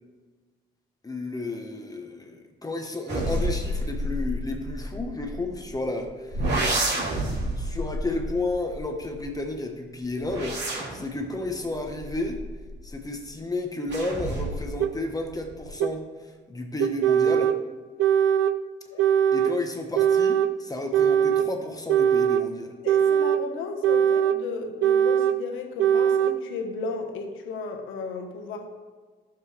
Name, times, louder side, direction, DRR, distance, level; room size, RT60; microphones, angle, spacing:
voice 1, 1.0-6.5 7.3-12.4 12.8-17.5 19.3-22.7, left 2 dB, 20° left, 3 dB, 1.2 m, -32 dB
sound 1, 3.1-5.8 6.3-9.4 10.0-13.0 13.9-14.8 15.1-15.7, right 1 dB, 60° right, 2.8 m, -30 dB
sound 2, 14.8-14.9 15.8-15.9 16.8-17.6 18.0-18.6 19.0-19.5 20.0-20.5 20.9-21.5 21.9-22.5 22.9-23.4 23.8-24.4 24.8-25.4 25.8-26.4, right 9 dB, 80° right, 0.5 m, -21 dB
voice 2, 22.8-28.7, left 4 dB, 90° left, 4 dB, 1.2 m, -35 dB
11.0 x 7.2 x 3.3 m, 1.4 s
cardioid pair, 90°, 20 cm